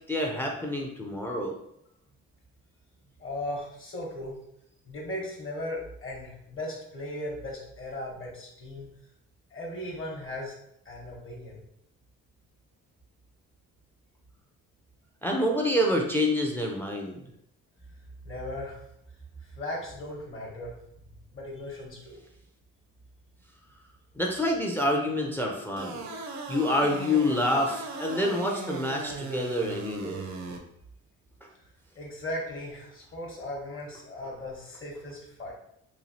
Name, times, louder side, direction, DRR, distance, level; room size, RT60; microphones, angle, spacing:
voice 1, 0.1-1.5 15.2-17.2 24.2-26.0 26.5-30.3, left 1 dB, 5° left, 0 dB, 0.4 m, -27 dB
voice 2, 3.2-4.4 4.8-8.9 9.5-10.5 10.8-11.6 18.2-18.8 19.4-20.7 21.3-22.2 31.9-35.5, left 1 dB, 45° left, -2 dB, 0.9 m, -37 dB
sound 1, 25.8-30.6, right 3 dB, 70° right, 0.6 m, -38 dB
3.0 x 2.3 x 2.7 m, 0.77 s
cardioid pair, 90°, 30 cm